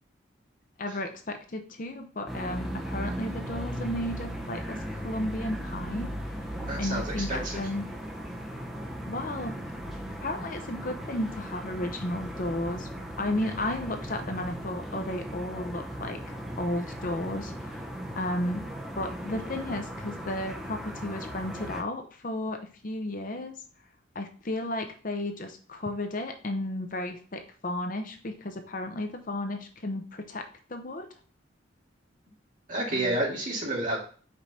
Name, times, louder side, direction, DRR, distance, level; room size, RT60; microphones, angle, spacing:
voice 1, 0.8-6.4 6.8-7.8 9.1-9.6 10.2-12.9 13.2-17.8 18.2-18.6 19.0-23.6 24.1-31.1 32.9-33.2, left 1 dB, 40° left, 5 dB, 0.7 m, -33 dB
sound 1, 2.3-21.8, equal, ahead, 0.8 m, -37 dB
voice 2, 6.6-7.6 32.7-34.0, right 1 dB, 40° right, -3 dB, 2.2 m, -30 dB
5.2 x 4.7 x 4.2 m, 0.41 s
head